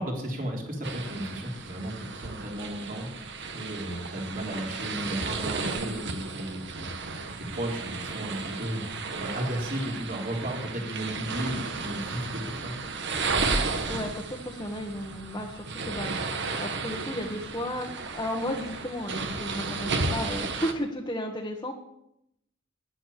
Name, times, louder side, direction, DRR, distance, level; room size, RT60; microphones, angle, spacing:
voice 1, 0.0-12.8, right 1 dB, 45° right, 0 dB, 3.5 m, -34 dB
sound 1, 0.8-20.7, right 4 dB, 60° right, 1.5 m, -33 dB
voice 2, 13.6-16.2 16.6-21.7, left 1 dB, 20° left, 0 dB, 1.5 m, -34 dB
12.0 x 10.5 x 8.2 m, 0.81 s
head